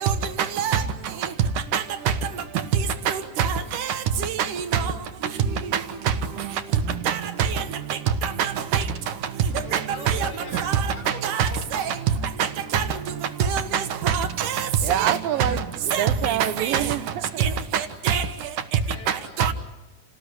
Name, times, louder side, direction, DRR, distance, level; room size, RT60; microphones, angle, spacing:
voice 1, 6.4-7.4 14.8-17.6, right 11 dB, 85° right, 2.8 m, -28 dB
voice 2, 8.4-8.8 9.7-9.8 10.1-10.2 10.6-10.8 11.2-11.8 12.7-12.8 13.5-13.6 14.1-14.6 15.1-15.2 15.9-16.0 16.6-16.8 17.4-17.5 18.1-18.2 19.4-19.5, right 8 dB, 70° right, 2.8 m, -23 dB
voice 3, 9.5-12.0 15.3-15.6 15.9-16.0 18.8-19.5, left 3 dB, 55° left, 5.0 m, -42 dB
30.0 x 19.0 x 10.0 m
omnidirectional pair, 3.9 m